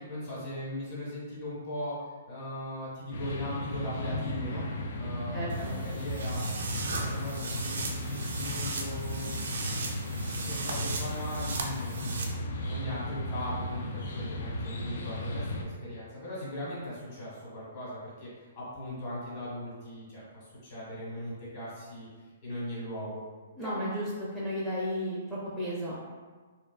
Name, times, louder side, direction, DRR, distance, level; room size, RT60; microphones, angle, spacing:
voice 1, 0.0-2.0 2.2-4.6 4.9-6.4 7.0-9.3 10.5-22.1 22.4-23.2 23.6-23.7, left 1 dB, 40° left, -8 dB, 1.3 m, -39 dB
sound 1, 3.1-15.6, left 1 dB, 65° left, 0.4 m, -35 dB
voice 2, 5.3-5.8 23.6-24.1 24.3-25.9, equal, ahead, -8 dB, 0.5 m, -33 dB
sound 2, 5.5-12.2, right 4 dB, 75° right, 0.4 m, -38 dB
2.6 x 2.3 x 2.4 m, 1.4 s
hypercardioid pair, 140°, 0 cm